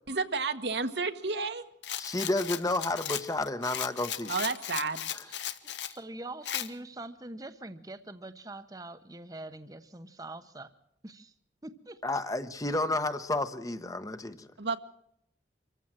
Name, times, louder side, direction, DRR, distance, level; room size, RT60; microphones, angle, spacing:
voice 1, 0.1-1.6 4.3-5.0 14.6-14.8, right 4 dB, 70° right, 8 dB, 1.6 m, -31 dB
Rattle, 1.8-6.0 6.4-6.7, left 10 dB, 80° left, 1.3 m, -36 dB
voice 2, 2.0-4.3 5.1-5.3 12.0-14.5, left 2 dB, 20° left, 10 dB, 1.0 m, -31 dB
voice 3, 5.3-10.7 11.0-11.3 11.6-12.0, right 2 dB, 20° right, 10 dB, 0.9 m, -44 dB
26.0 x 15.0 x 7.5 m, 0.74 s
head